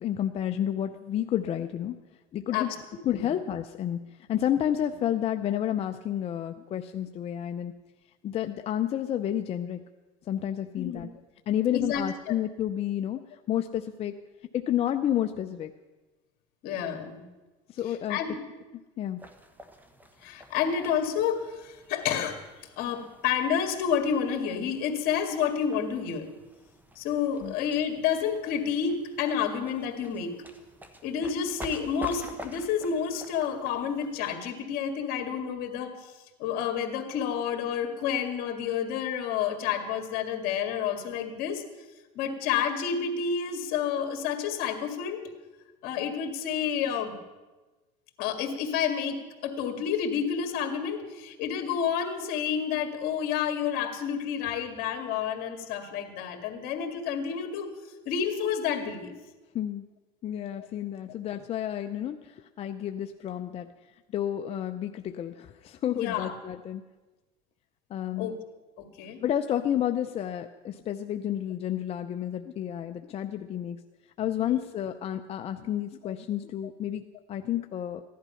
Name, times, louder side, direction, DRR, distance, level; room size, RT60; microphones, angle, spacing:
voice 1, 0.0-2.0 2.3-2.7 3.0-7.7 8.2-9.8 10.3-11.1 11.5-14.2 14.5-15.7 17.7-18.2 19.0-19.2 27.4-27.5 59.5-59.9 60.2-63.7 64.1-66.9 67.9-68.4 69.2-73.8 74.2-77.0 77.3-78.0, left 11 dB, 35° left, 7 dB, 0.5 m, -30 dB
voice 2, 11.7-12.3 16.6-17.3 18.1-18.4 20.2-22.4 22.8-26.3 27.0-30.4 31.0-36.1 36.4-41.6 42.2-45.2 45.8-47.2 48.2-57.7 58.1-59.1 65.9-66.3 68.2-68.3 68.8-69.2 74.4-74.5 76.0-76.1, left 7 dB, 65° left, 6 dB, 2.0 m, -29 dB
sound 1, 19.2-34.4, equal, 10° right, 1.2 m, -49 dB
15.5 x 11.0 x 5.7 m, 1.2 s
cardioid pair, 125°, 17 cm